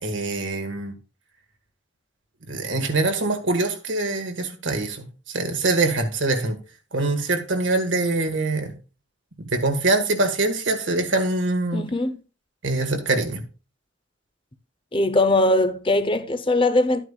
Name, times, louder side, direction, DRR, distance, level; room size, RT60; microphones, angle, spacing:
voice 1, 0.0-0.9 2.5-6.6 6.9-8.8 9.4-11.8 12.6-13.4, right 2 dB, 75° right, 1.7 m, -24 dB
voice 2, 11.7-12.2 14.9-17.1, left 2 dB, 25° left, 0.8 m, -20 dB
12.5 x 9.1 x 2.4 m
head